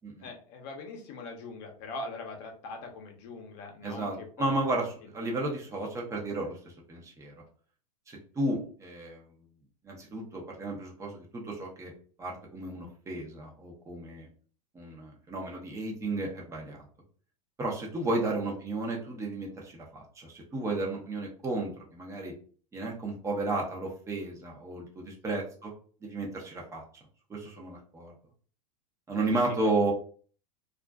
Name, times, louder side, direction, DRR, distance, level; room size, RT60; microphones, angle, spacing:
voice 1, 0.2-4.6 25.2-25.4 29.3-29.4, left 3 dB, 50° left, 2 dB, 0.8 m, -42 dB
voice 2, 3.8-7.3 8.1-9.3 9.8-11.9 12.2-14.3 14.7-16.9 17.6-22.3 22.7-25.7 26.0-27.0 27.3-28.1 29.1-29.9, right 2 dB, 15° right, -1 dB, 0.7 m, -33 dB
2.4 x 2.4 x 2.2 m, 0.43 s
supercardioid pair, 135°, 20 cm